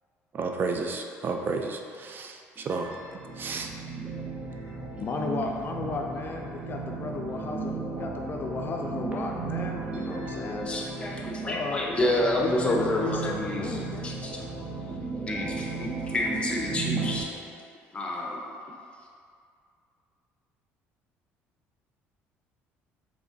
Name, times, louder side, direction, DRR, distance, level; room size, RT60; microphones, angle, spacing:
voice 1, 0.3-2.9 3.4-3.7, right 4 dB, 40° right, 3 dB, 0.3 m, -32 dB
sound 1, 2.6-17.2, right 4 dB, 25° right, 0.8 m, -35 dB
voice 2, 5.0-10.8 11.4-11.8 12.4-14.1, left 4 dB, 40° left, 2 dB, 0.3 m, -34 dB
voice 3, 10.7-14.4 15.3-17.3 17.9-18.4, left 1 dB, 20° left, -2 dB, 0.7 m, -29 dB
4.7 x 3.4 x 2.6 m, 2.3 s
supercardioid pair, 90°, 5 cm